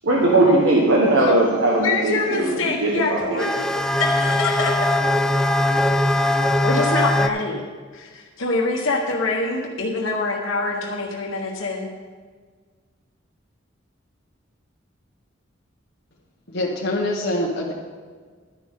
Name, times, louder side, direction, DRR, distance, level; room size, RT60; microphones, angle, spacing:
voice 1, 0.0-3.5, right 2 dB, 75° right, -3 dB, 1.4 m, -19 dB
voice 2, 1.7-4.8 6.6-7.7 7.9-11.9, left 3 dB, 85° left, -1 dB, 1.4 m, -25 dB
sound 1, 3.4-7.3, left 1 dB, 5° left, 0.3 m, -20 dB
voice 3, 16.5-17.7, left 1 dB, 55° left, -4 dB, 1.3 m, -24 dB
12.0 x 10.0 x 3.8 m, 1.5 s
head